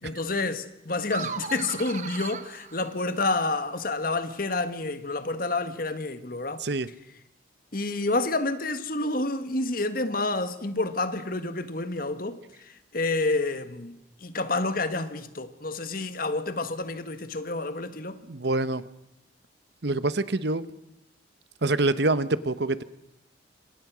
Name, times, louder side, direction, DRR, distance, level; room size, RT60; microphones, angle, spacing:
voice 1, 0.0-6.6 7.7-18.2, left 2 dB, 45° left, 1.7 m, -29 dB
sound 1, 1.0-3.5, right 5 dB, 40° right, 1.2 m, -37 dB
voice 2, 18.3-18.8 19.8-20.6 21.6-22.8, right 2 dB, 60° right, 1.0 m, -25 dB
28.0 x 26.5 x 6.3 m
head